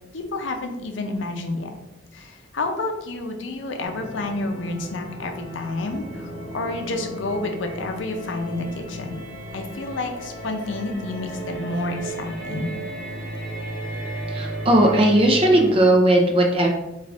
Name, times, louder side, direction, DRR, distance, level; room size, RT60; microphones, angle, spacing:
voice 1, 0.1-1.7 2.1-9.2 9.5-12.7, left 2 dB, 75° left, 5 dB, 0.5 m, -29 dB
sound 1, 3.8-15.7, right 1 dB, 25° left, 1.0 m, -34 dB
voice 2, 14.3-16.7, right 1 dB, 30° right, 2 dB, 0.5 m, -17 dB
3.6 x 2.4 x 3.4 m, 0.94 s
head